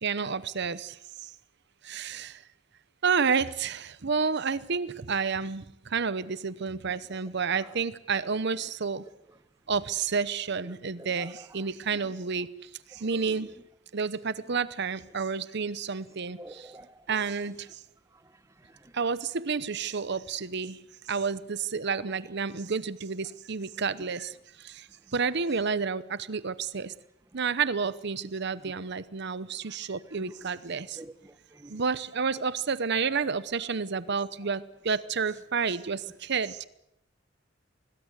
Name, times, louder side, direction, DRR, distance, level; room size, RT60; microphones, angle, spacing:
voice 1, 0.0-0.9 1.9-2.3 3.0-5.6 5.9-9.0 9.7-12.5 13.0-13.5 13.9-16.6 17.1-17.5 18.9-20.8 21.1-24.3 24.6-24.7 25.1-26.9 27.3-31.0 31.7-36.6, right 5 dB, 60° right, 0.9 m, -30 dB
voice 2, 10.6-12.1 12.9-13.5 14.4-14.6 16.4-17.2 18.1-19.0 24.0-24.1 25.0-25.1 28.6-28.7 29.7-31.8, right 1 dB, 15° right, 1.2 m, -50 dB
25.5 x 20.0 x 8.2 m
head